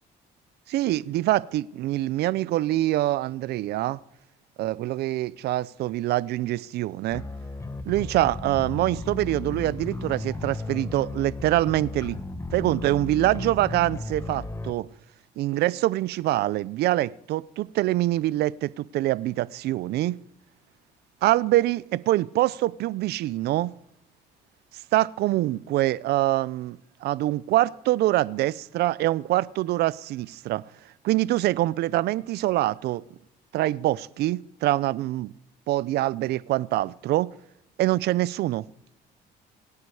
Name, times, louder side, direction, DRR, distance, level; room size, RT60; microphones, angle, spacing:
voice 1, 0.7-4.0 4.6-7.2 7.9-12.2 12.5-14.9 15.4-20.2 21.2-23.7 24.9-30.6 31.0-33.0 33.5-35.3 35.7-37.3 37.8-38.6, right 16 dB, 75° right, 0.6 m, -25 dB
sound 1, 7.1-14.7, left 3 dB, 15° left, 1.4 m, -35 dB
26.5 x 9.6 x 4.9 m
cardioid pair, 110°, 17 cm